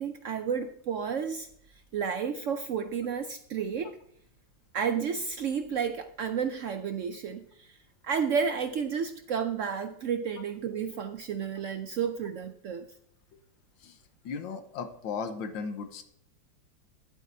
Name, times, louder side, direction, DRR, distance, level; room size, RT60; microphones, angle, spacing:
voice 1, 0.0-1.5 1.9-4.0 4.7-7.8 8.0-12.9, right 6 dB, 80° right, 8 dB, 0.7 m, -31 dB
voice 2, 14.2-16.0, left 5 dB, 85° left, 8 dB, 1.7 m, -36 dB
12.5 x 11.5 x 2.7 m, 0.68 s
omnidirectional pair, 2.0 m